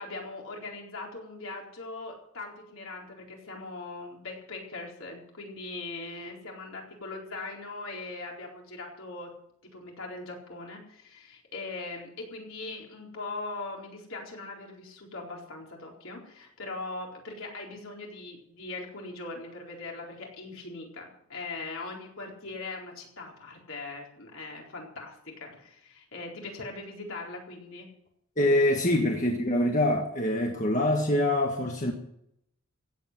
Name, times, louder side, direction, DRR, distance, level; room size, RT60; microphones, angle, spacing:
voice 1, 0.0-9.3 9.6-27.9, left 3 dB, 65° left, 0 dB, 4.3 m, -40 dB
voice 2, 28.4-31.9, left 1 dB, 35° left, 2 dB, 1.5 m, -25 dB
16.0 x 8.4 x 7.7 m, 0.74 s
head